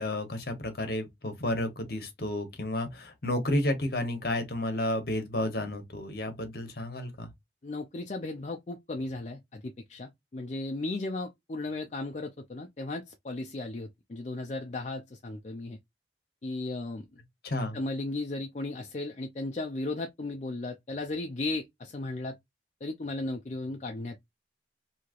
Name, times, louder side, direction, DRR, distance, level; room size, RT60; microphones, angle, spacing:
voice 1, 0.0-7.3 17.4-17.8, left 1 dB, 55° left, 1.1 m, -31 dB
voice 2, 7.6-15.8 16.4-17.0 17.7-22.4 22.8-24.2, left 2 dB, 40° left, 0.4 m, -35 dB
3.1 x 2.8 x 2.4 m
head